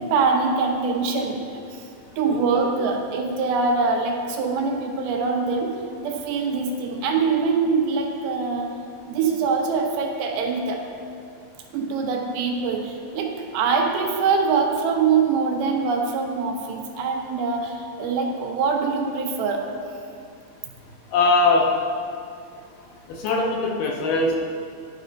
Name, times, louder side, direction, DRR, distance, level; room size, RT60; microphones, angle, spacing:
voice 1, 0.0-1.8 2.2-8.7 9.1-10.8 11.7-19.6, right 4 dB, 85° right, 2 dB, 2.7 m, -24 dB
voice 2, 21.1-21.7 23.2-24.4, left 3 dB, 75° left, -1 dB, 2.1 m, -20 dB
12.5 x 5.3 x 3.9 m, 2.4 s
omnidirectional pair, 4.3 m